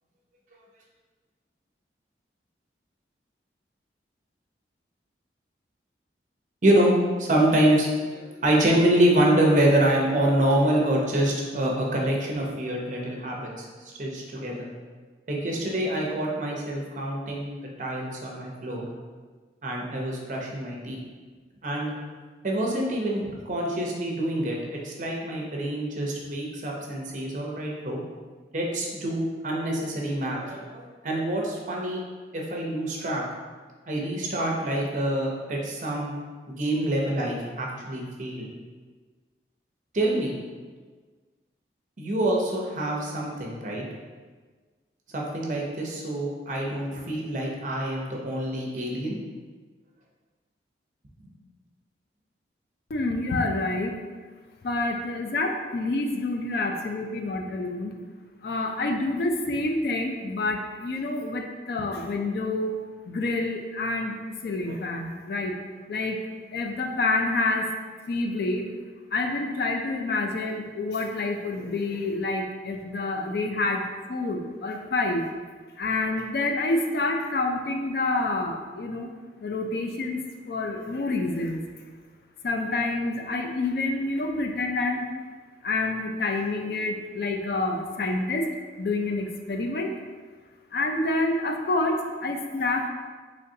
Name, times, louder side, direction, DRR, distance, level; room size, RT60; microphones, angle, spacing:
voice 1, 6.6-6.9 7.2-14.7 15.3-18.8 19.6-21.0 21.6-21.9 22.4-28.0 28.5-32.0 32.3-33.2 33.9-36.1 36.5-38.5 39.9-40.3 42.0-43.8 45.1-49.2, right 1 dB, 45° right, -1 dB, 0.6 m, -26 dB
voice 2, 52.9-53.9 54.6-57.9 58.4-62.7 63.1-64.2 64.4-65.5 65.9-66.2 66.5-67.7 68.1-68.7 69.1-73.8 74.1-75.2 75.8-79.1 79.4-81.6 82.4-85.1 85.6-88.5 88.8-89.9 90.7-92.9, left 2 dB, 60° left, 4 dB, 0.4 m, -28 dB
3.9 x 3.3 x 2.7 m, 1.4 s
head